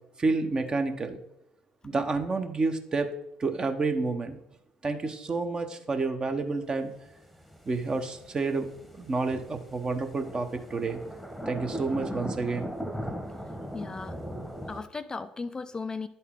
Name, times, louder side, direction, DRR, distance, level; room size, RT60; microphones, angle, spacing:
voice 1, 0.2-1.2 1.8-3.1 3.4-4.4 4.8-6.9 7.7-11.0 11.5-12.7, right 3 dB, 30° right, 7 dB, 0.9 m, -29 dB
sound 1, 7.1-14.8, equal, ahead, 1.1 m, -39 dB
voice 2, 13.7-14.2 14.7-16.1, left 4 dB, 25° left, 11 dB, 0.3 m, -36 dB
10.5 x 4.2 x 3.7 m, 0.81 s
hypercardioid pair, 65°, 3 cm